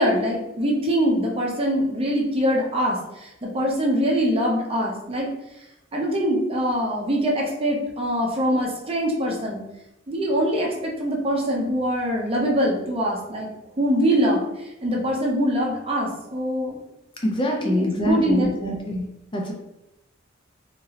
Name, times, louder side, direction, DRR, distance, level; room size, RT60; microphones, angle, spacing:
voice 1, 0.0-5.3 5.9-9.6 10.1-13.5 13.8-16.8 17.6-18.8, equal, 30° right, -1 dB, 0.6 m, -23 dB
voice 2, 17.2-19.0 19.3-19.5, left 1 dB, 25° left, 1 dB, 0.4 m, -24 dB
2.9 x 2.6 x 2.8 m, 0.89 s
head